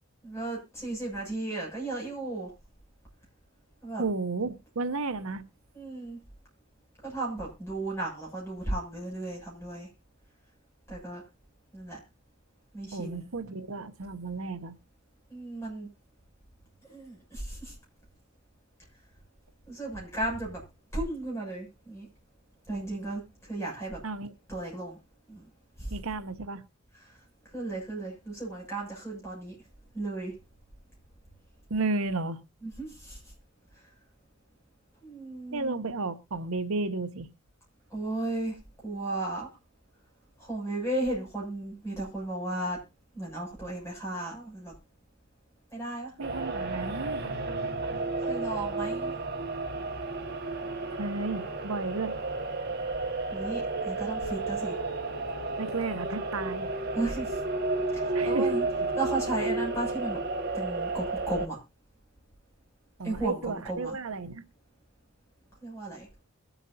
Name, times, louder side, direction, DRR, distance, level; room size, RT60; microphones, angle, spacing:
voice 1, 0.2-2.5 3.8-4.0 5.7-6.2 7.0-9.9 10.9-11.2 11.7-12.0 12.7-13.3 15.3-15.9 16.8-17.7 19.7-20.6 20.9-22.1 22.7-24.0 24.5-25.0 25.3-25.4 25.8-26.0 27.1-27.2 27.5-29.6 29.9-30.3 32.6-33.2 35.0-35.8 37.9-38.5 38.8-39.5 40.4-42.8 43.1-44.7 45.7-46.1 48.2-49.1 53.3-54.8 56.9-57.4 57.9-58.6 58.9-60.2 60.5-61.6 63.0-63.9 65.6-66.1, right 2 dB, 10° left, 6.9 m, -34 dB
voice 2, 4.0-5.4 12.9-14.8 24.0-24.3 25.9-26.6 31.7-32.4 35.5-37.3 46.2-47.2 51.0-52.2 55.6-56.7 58.1-58.6 63.0-64.4, right 3 dB, 70° right, 0.8 m, -33 dB
sound 1, 46.2-61.5, right 3 dB, 45° right, 1.7 m, -32 dB
22.5 x 8.1 x 2.7 m
head